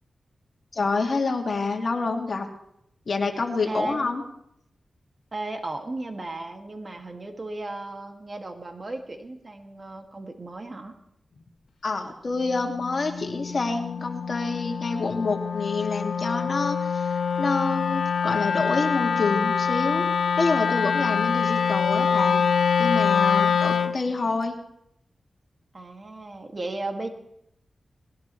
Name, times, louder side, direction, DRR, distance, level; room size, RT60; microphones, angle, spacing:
voice 1, 0.7-2.5 3.1-4.2 11.8-20.1 20.4-22.4 22.8-24.6, left 3 dB, 55° left, 3 dB, 2.2 m, -27 dB
voice 2, 3.7-4.1 5.3-11.0 23.7-24.1 25.7-27.1, right 2 dB, 40° right, 4 dB, 2.1 m, -35 dB
Wind instrument woodwind instrument, 12.4-24.0, left 6 dB, 75° left, 0.6 m, -25 dB
20.5 x 16.5 x 3.2 m, 0.76 s
cardioid pair, 65°, 0 cm